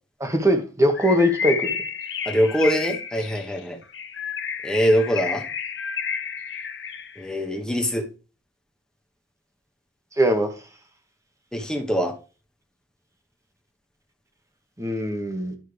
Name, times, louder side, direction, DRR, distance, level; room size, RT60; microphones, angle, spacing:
voice 1, 0.2-1.8 10.2-10.5 14.8-15.6, equal, 20° right, 1.3 m, -21 dB
Bird, 0.9-7.3, left 6 dB, 70° left, 0.9 m, -31 dB
voice 2, 2.2-3.8 4.6-5.4 7.2-8.1 11.5-12.1, equal, 5° left, 1.2 m, -23 dB
11.5 x 5.5 x 3.3 m
head